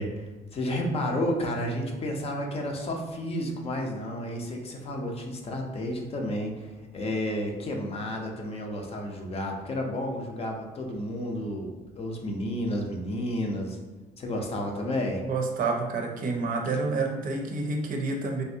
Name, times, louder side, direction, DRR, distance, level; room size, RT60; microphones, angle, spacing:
voice 1, 0.0-13.8 14.2-15.2, left 1 dB, 35° left, 1 dB, 0.6 m, -31 dB
voice 2, 15.3-18.4, right 3 dB, 55° right, 2 dB, 0.5 m, -28 dB
3.3 x 2.6 x 2.7 m, 1.2 s
cardioid pair, 110°, 17 cm